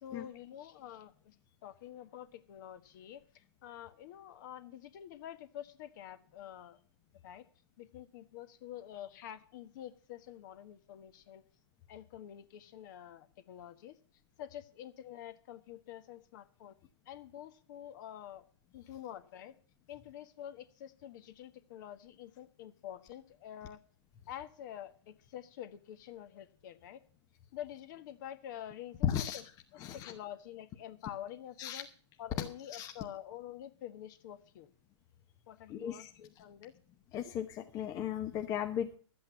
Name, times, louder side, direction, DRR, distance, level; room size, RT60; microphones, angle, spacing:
voice 1, 0.0-1.3 1.6-3.2 3.6-6.8 7.2-7.5 7.8-11.4 11.9-14.0 14.4-16.8 17.1-18.4 18.7-19.6 19.9-23.8 24.3-27.0 27.5-29.4 29.9-31.9 32.2-34.7 35.5-36.7, left 11 dB, 40° left, 11 dB, 1.3 m, -47 dB
voice 2, 29.0-29.4 29.8-30.1 31.6-31.8 32.4-32.5 32.7-32.9 35.7-36.1 37.1-39.0, left 10 dB, 20° left, 5 dB, 0.9 m, -35 dB
12.0 x 8.5 x 7.0 m, 0.43 s
hypercardioid pair, 140°, 15 cm